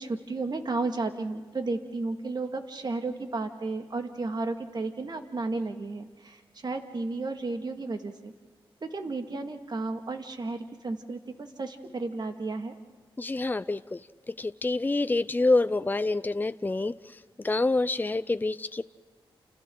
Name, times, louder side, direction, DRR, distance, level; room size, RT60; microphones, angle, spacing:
voice 1, 0.0-8.3 8.8-12.7, right 3 dB, 50° right, 5 dB, 2.2 m, -33 dB
voice 2, 13.2-14.0 14.4-16.9 17.4-18.8, left 2 dB, 20° left, 13 dB, 0.6 m, -26 dB
29.5 x 29.0 x 4.0 m, 1.4 s
cardioid pair, 70°, 9 cm